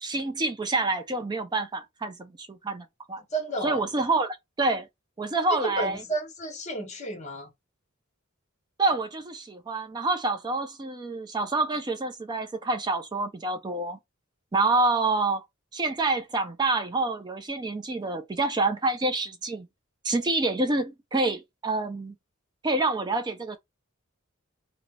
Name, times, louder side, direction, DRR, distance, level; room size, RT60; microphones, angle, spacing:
voice 1, 0.0-3.2 3.6-4.9 5.2-6.0 8.8-14.0 14.5-15.4 15.7-19.7 20.0-22.1 22.6-23.6, right 3 dB, 20° right, 0.4 m, -27 dB
voice 2, 3.2-3.8 5.6-7.5, right 2 dB, 35° left, 1.0 m, -32 dB
3.2 x 2.0 x 3.6 m
head